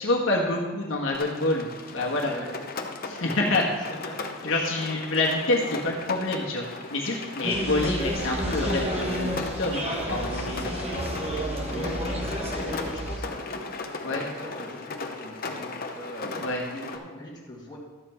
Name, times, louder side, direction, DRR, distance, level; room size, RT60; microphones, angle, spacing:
voice 1, 0.0-2.3 3.0-3.6 4.4-10.7 14.0-14.2 16.4-16.6, left 2 dB, 65° left, -1 dB, 1.5 m, -27 dB
Rain, 1.1-17.0, left 3 dB, 45° left, 0.9 m, -37 dB
voice 2, 3.2-4.8 5.2-5.3 11.7-13.7 14.1-17.8, left 1 dB, 20° left, -6 dB, 2.3 m, -41 dB
sound 1, 7.4-13.2, equal, 30° right, 1.1 m, -30 dB
12.5 x 7.7 x 4.4 m, 1.2 s
head